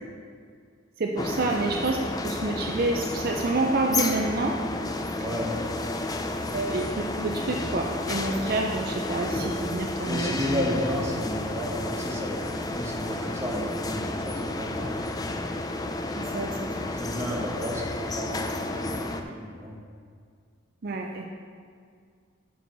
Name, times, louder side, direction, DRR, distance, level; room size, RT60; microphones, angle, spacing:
voice 1, 1.0-2.0 2.2-4.6 6.5-10.4 16.1-16.5 16.8-16.9 20.8-21.3, right 2 dB, 50° right, 1 dB, 0.5 m, -28 dB
sound 1, 1.2-19.2, left 2 dB, 20° left, 0.4 m, -31 dB
voice 2, 5.2-5.7 10.1-15.5 16.9-19.8, equal, 15° right, -3 dB, 1.1 m, -33 dB
9.1 x 6.3 x 4.0 m, 2.1 s
head